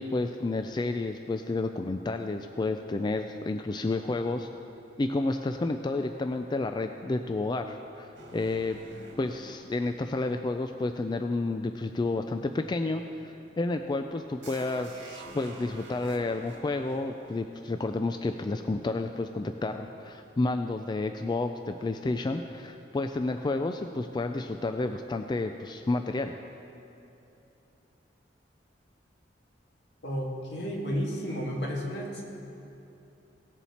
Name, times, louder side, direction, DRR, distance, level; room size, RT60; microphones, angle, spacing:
voice 1, 0.0-4.5 5.0-8.8 9.2-26.3, left 2 dB, 25° left, 6 dB, 0.3 m, -30 dB
sound 1, 8.1-11.6 14.4-18.5, right 2 dB, 75° right, 1.7 m, -49 dB
voice 2, 30.0-32.2, equal, 70° left, -1 dB, 2.0 m, -32 dB
18.0 x 7.1 x 4.3 m, 2.8 s
head